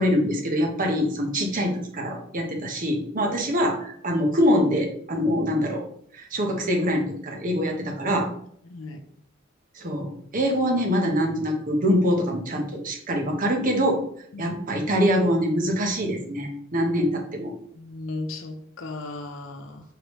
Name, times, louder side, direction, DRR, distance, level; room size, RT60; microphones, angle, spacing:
voice 1, 0.0-5.8 6.1-8.3 9.8-14.0 14.4-17.5, equal, 45° right, 2 dB, 0.9 m, -24 dB
voice 2, 8.7-9.0 14.3-14.5 17.8-19.8, left 2 dB, 75° left, 5 dB, 0.7 m, -35 dB
4.8 x 3.2 x 3.0 m, 0.64 s
head